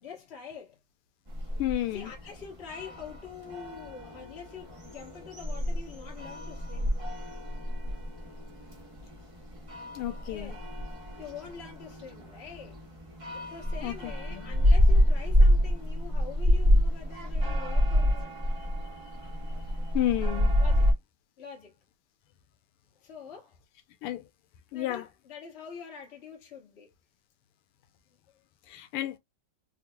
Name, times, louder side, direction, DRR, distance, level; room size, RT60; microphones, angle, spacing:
voice 1, 0.0-0.8 1.9-7.0 10.1-10.7 11.1-12.8 13.5-18.3 20.6-21.0 21.4-21.7 23.0-23.6 24.7-26.9, left 6 dB, 35° left, 1.2 m, -45 dB
sound 1, 1.3-20.9, equal, 20° right, 0.9 m, -27 dB
voice 2, 1.6-2.1 9.9-10.6 13.8-14.5 19.9-20.6 24.0-24.2 24.7-25.1 28.7-29.2, left 14 dB, 90° left, 1.6 m, -31 dB
3.9 x 2.9 x 2.2 m
omnidirectional pair, 2.4 m